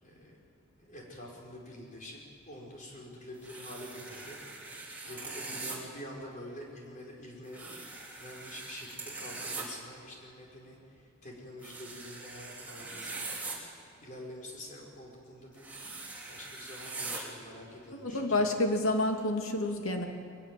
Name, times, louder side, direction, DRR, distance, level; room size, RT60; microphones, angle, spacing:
voice 1, 0.0-0.4 0.8-2.2 2.5-4.4 5.1-7.6 8.2-13.6 14.0-16.0 16.3-18.5, left 1 dB, 40° left, -1 dB, 5.2 m, -47 dB
sound 1, 3.4-5.8 7.5-9.6 11.6-13.6 15.6-17.2, right 3 dB, 10° right, 3.4 m, -42 dB
voice 2, 17.9-20.1, left 2 dB, 90° left, 3 dB, 2.6 m, -29 dB
22.0 x 20.5 x 7.7 m, 2.6 s
head